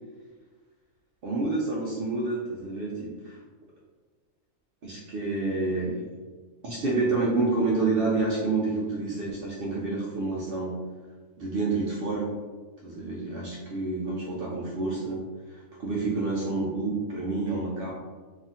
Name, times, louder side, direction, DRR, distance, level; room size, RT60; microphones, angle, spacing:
voice 1, 1.2-3.4 4.8-6.1 6.6-10.8 11.4-12.3 12.8-17.9, right 3 dB, 80° right, -5 dB, 0.5 m, -28 dB
2.8 x 2.4 x 2.6 m, 1.4 s
omnidirectional pair, 1.5 m